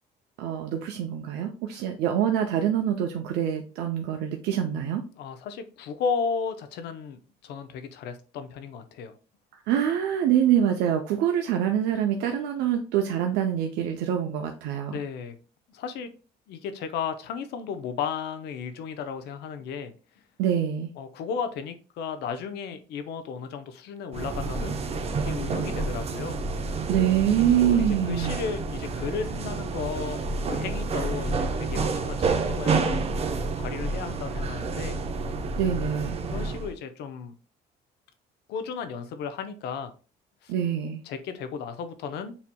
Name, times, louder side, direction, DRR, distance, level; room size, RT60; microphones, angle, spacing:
voice 1, 0.4-5.0 9.7-15.0 20.4-20.9 26.9-28.4 35.6-36.2 40.5-41.0, right 9 dB, 90° right, 4 dB, 0.6 m, -25 dB
voice 2, 5.1-9.1 14.9-15.4 15.7-16.1 16.5-19.9 21.0-24.8 25.1-26.4 27.7-32.9 33.6-35.0 36.3-37.3 38.5-39.9 40.4-40.5 41.0-42.4, left 6 dB, 80° left, 9 dB, 0.7 m, -34 dB
sound 1, 24.1-36.7, right 3 dB, 35° right, 0.7 m, -29 dB
7.1 x 2.8 x 2.2 m, 0.35 s
cardioid pair, 110°, 17 cm